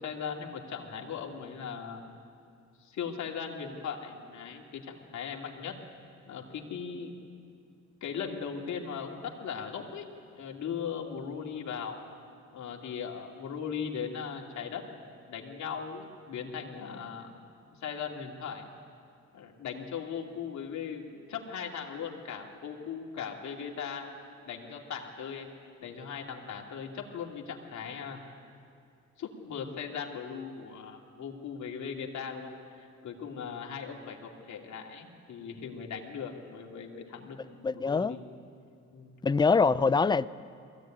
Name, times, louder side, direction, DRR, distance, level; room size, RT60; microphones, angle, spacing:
voice 1, 0.0-2.1 2.8-5.8 6.3-7.2 8.0-10.1 10.3-12.0 12.5-14.8 15.3-17.4 17.8-18.7 19.3-24.1 24.5-25.5 25.8-28.2 29.2-32.5 32.8-38.3 38.9-39.1, left 6 dB, 70° left, 1 dB, 2.6 m, -38 dB
voice 2, 37.6-38.2 39.2-40.3, left 4 dB, 15° left, 16 dB, 0.4 m, -24 dB
21.5 x 16.0 x 9.1 m, 2.4 s
cardioid pair, 90°, 30 cm